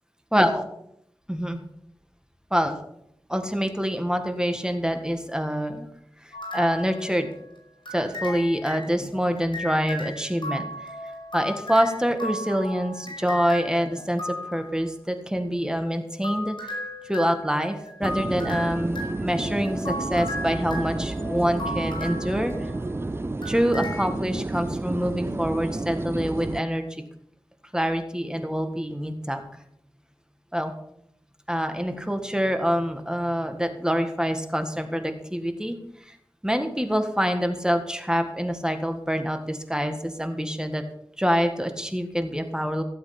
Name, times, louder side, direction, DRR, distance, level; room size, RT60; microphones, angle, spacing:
voice 1, 0.3-0.6 1.3-1.6 2.5-2.7 3.3-5.9 6.2-7.3 7.9-10.9 11.3-16.7 17.0-22.7 23.4-27.0 27.7-29.4 30.5-30.7 31.5-36.2 36.4-40.8 41.2-42.8, equal, 10° right, 6 dB, 1.7 m, -26 dB
sound 1, 6.3-7.4 7.9-14.8 15.8-23.0 23.4-24.0, left 1 dB, 60° left, 5.9 m, -36 dB
sound 2, 18.0-26.6, right 2 dB, 25° right, 0.4 m, -31 dB
16.0 x 8.0 x 5.9 m, 0.74 s
wide cardioid pair, 50°, 9 cm